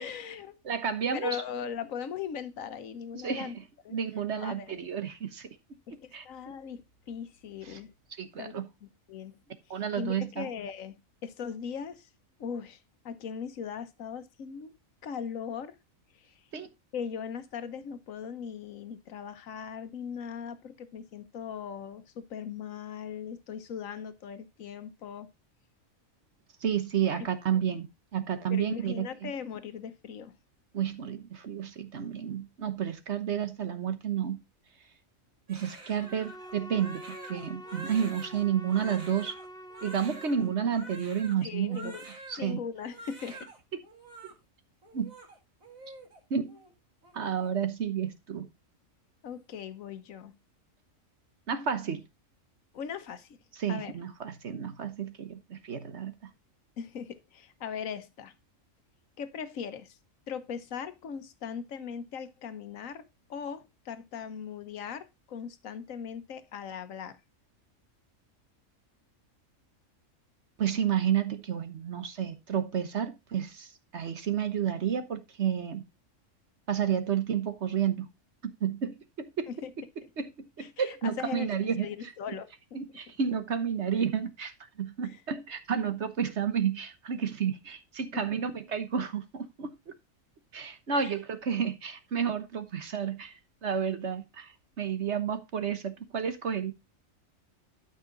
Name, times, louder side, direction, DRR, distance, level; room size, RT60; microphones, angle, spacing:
voice 1, 0.0-0.6 1.1-3.6 3.8-4.0 4.4-4.8 5.9-7.9 8.4-8.5 8.8-9.4 9.7-12.1 12.4-14.8 15.0-15.8 16.2-16.3 16.9-25.3 27.1-27.3 28.5-30.4 41.4-42.1 42.4-43.5 49.2-50.4 52.7-53.4 53.7-53.9 56.8-58.3 59.2-60.0 60.3-67.2 79.5-79.7 80.0-80.1 80.6-82.8 85.0-85.2 90.9-91.1, left 7 dB, 80° left, 1.4 m, -39 dB
voice 2, 0.6-1.4 3.1-3.5 3.9-5.5 6.1-6.6 7.7-7.8 8.2-8.7 9.7-10.5 16.5-16.7 26.6-27.8 28.1-29.3 30.7-34.4 35.5-37.0 37.3-39.3 39.8-41.9 42.3-42.6 44.9-45.1 46.3-46.6 47.1-48.5 51.5-52.0 53.6-56.3 70.6-75.8 76.7-78.1 78.4-79.5 80.2-80.3 80.6-81.9 82.7-89.9 90.5-96.7, right 8 dB, 60° right, 1.3 m, -31 dB
Crying sobbing, 35.5-42.5 42.8-43.6 43.8-44.3 44.8-46.2 46.5-46.7 47.0-47.5, right 2 dB, 90° right, 2.9 m, -47 dB
Bowed string instrument, 36.0-40.8, right 1 dB, 5° left, 1.1 m, -46 dB
12.5 x 5.6 x 3.8 m
omnidirectional pair, 1.4 m